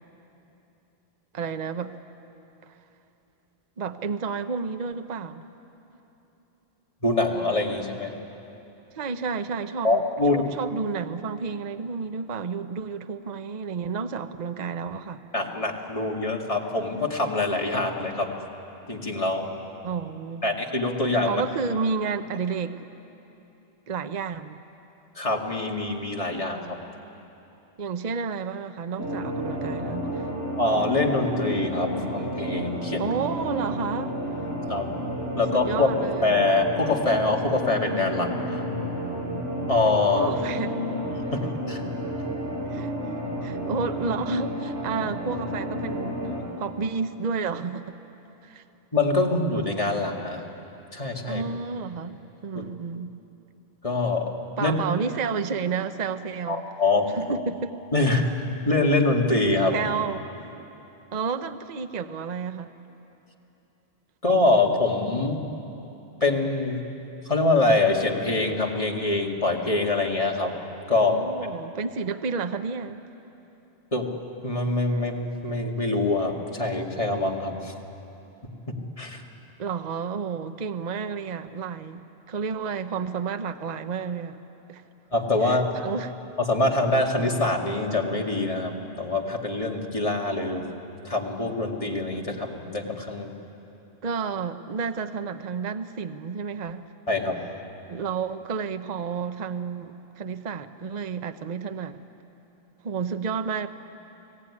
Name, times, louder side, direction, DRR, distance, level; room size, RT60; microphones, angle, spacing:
voice 1, 1.3-1.9 2.6-2.7 3.8-5.4 8.9-15.2 19.8-20.4 21.2-22.9 23.9-24.6 27.8-30.3 33.0-34.2 35.5-36.3 40.1-40.8 42.7-43.2 43.4-48.0 48.4-48.6 51.2-52.1 52.4-53.1 54.6-56.7 57.2-57.8 59.7-60.2 61.1-62.8 71.1-73.0 79.6-82.0 82.3-84.4 84.7-84.8 85.4-86.1 94.0-96.8 97.9-102.0 102.8-103.7, right 5 dB, 40° right, 9 dB, 0.8 m, -31 dB
voice 2, 7.0-8.1 9.8-10.5 15.3-18.3 18.9-19.5 20.4-21.4 25.2-26.8 30.6-33.0 34.7-34.9 35.4-38.6 39.7-40.3 41.3-41.8 48.9-50.4 50.9-51.4 53.8-54.3 54.6-54.8 56.5-57.1 57.9-58.3 58.7-59.7 64.2-65.4 66.2-66.8 67.3-70.5 70.9-71.2 73.9-74.1 74.4-77.7 78.7-79.2 85.1-85.7 86.4-90.6 91.1-93.3 97.1-97.4, left 2 dB, 30° left, 0 dB, 2.3 m, -24 dB
sound 1, 29.0-46.4, equal, 65° right, 6.0 m, -31 dB
30.0 x 18.5 x 9.8 m, 3.0 s
omnidirectional pair, 1.2 m